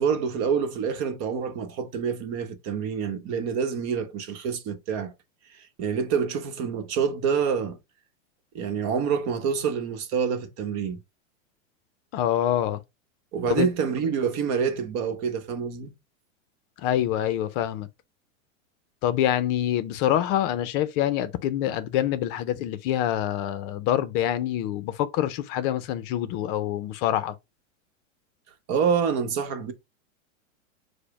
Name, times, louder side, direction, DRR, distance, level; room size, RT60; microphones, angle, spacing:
voice 1, 0.0-5.1 5.5-7.8 8.5-11.0 13.3-15.9 28.7-29.7, right 6 dB, 40° right, 1.0 m, -27 dB
voice 2, 12.1-12.8 13.5-13.7 16.8-17.9 19.0-27.4, left 11 dB, 45° left, 0.5 m, -26 dB
4.8 x 2.1 x 4.7 m
hypercardioid pair, 125°, 39 cm